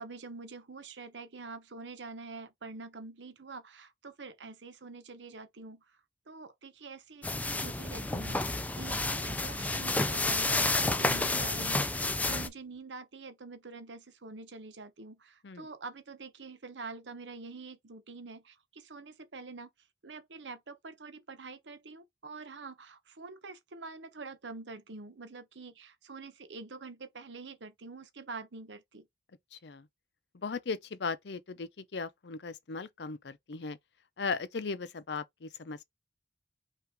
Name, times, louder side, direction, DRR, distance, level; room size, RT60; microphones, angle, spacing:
voice 1, 0.0-6.0 6.3-19.7 20.0-29.1, right 3 dB, 90° right, 0.9 m, -46 dB
sound 1, 7.2-12.5, left 2 dB, 10° left, 0.4 m, -30 dB
Thunder, 8.0-12.8, right 1 dB, 60° right, 1.8 m, -52 dB
voice 2, 29.5-29.9 30.3-33.8 34.2-35.8, left 4 dB, 70° left, 0.6 m, -37 dB
5.6 x 2.6 x 3.6 m
head